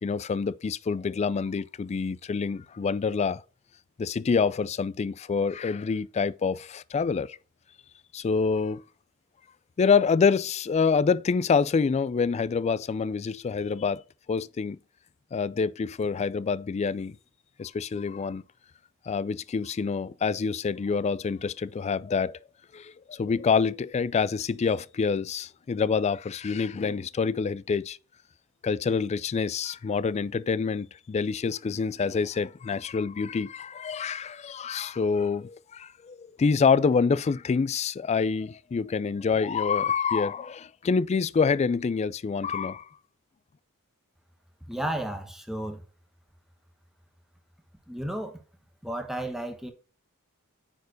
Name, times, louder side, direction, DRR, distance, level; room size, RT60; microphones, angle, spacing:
voice 1, 0.0-3.4 4.0-7.4 8.1-8.8 9.8-14.0 14.3-14.8 15.3-17.2 17.6-18.4 19.1-22.4 22.7-28.0 28.6-42.9, left 5 dB, 30° left, 0.3 m, -26 dB
voice 2, 44.7-45.8 47.9-48.4 48.8-49.7, right 1 dB, ahead, 0.9 m, -33 dB
9.4 x 4.5 x 4.0 m
head